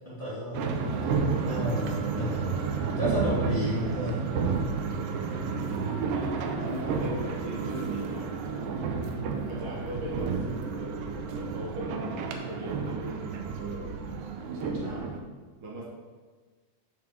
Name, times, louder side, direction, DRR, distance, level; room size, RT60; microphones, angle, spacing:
voice 1, 0.0-0.7 1.0-1.1 1.5-2.4 3.0-4.2, equal, 20° left, -11 dB, 2.0 m, -32 dB
sound 1, 0.5-15.2, right 5 dB, 90° right, 2.3 m, -31 dB
voice 2, 2.9-3.7 4.6-4.8 5.9-8.7 9.5-11.0 11.3-13.9 14.2-15.2 15.6-15.9, right 2 dB, 70° right, -2 dB, 2.6 m, -39 dB
5.3 x 4.7 x 6.1 m, 1.4 s
omnidirectional pair, 3.9 m